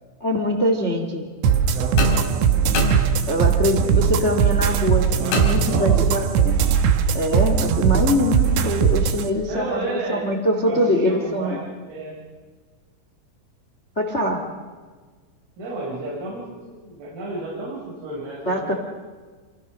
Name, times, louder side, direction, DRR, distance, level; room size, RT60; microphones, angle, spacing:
voice 1, 0.2-1.3 3.3-6.6 7.1-11.6 13.9-14.4 18.4-18.7, left 1 dB, 60° left, 3 dB, 0.7 m, -23 dB
sound 1, 1.4-9.2, right 7 dB, 70° right, 3.2 m, -19 dB
voice 2, 1.5-2.2 3.7-4.0 5.1-6.0 9.4-10.2 10.6-11.6 11.9-12.1 15.6-18.8, right 2 dB, 85° right, -5 dB, 8.4 m, -32 dB
sound 2, 2.0-3.6 5.3-6.3, left 3 dB, 85° left, 6.9 m, -27 dB
28.5 x 27.0 x 6.4 m, 1.5 s
omnidirectional pair, 6.0 m